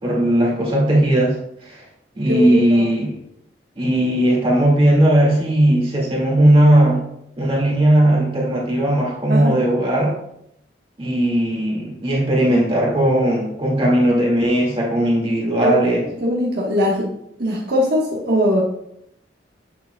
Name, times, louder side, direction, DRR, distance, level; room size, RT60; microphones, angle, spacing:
voice 1, 0.0-1.8 2.2-3.2 3.8-7.1 7.4-10.2 11.0-16.1, right 1 dB, 30° right, -3 dB, 2.0 m, -17 dB
voice 2, 2.2-2.8 9.3-9.6 15.6-15.8 16.2-17.1 17.4-18.6, equal, 60° right, -4 dB, 1.3 m, -20 dB
8.3 x 7.2 x 2.3 m, 0.77 s
head